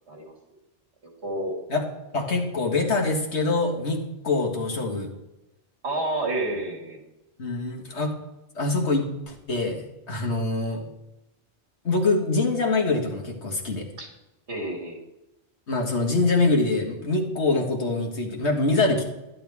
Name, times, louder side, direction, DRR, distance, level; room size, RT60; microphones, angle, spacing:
voice 1, 1.2-1.6 5.8-7.0 14.0-14.1 14.5-15.0, right 2 dB, 75° right, 0 dB, 2.6 m, -29 dB
voice 2, 2.1-5.1 7.4-8.1 8.6-10.9 11.8-13.9 15.7-19.0, left 3 dB, 75° left, 0 dB, 2.0 m, -24 dB
11.5 x 10.5 x 3.5 m, 0.94 s
omnidirectional pair, 1.1 m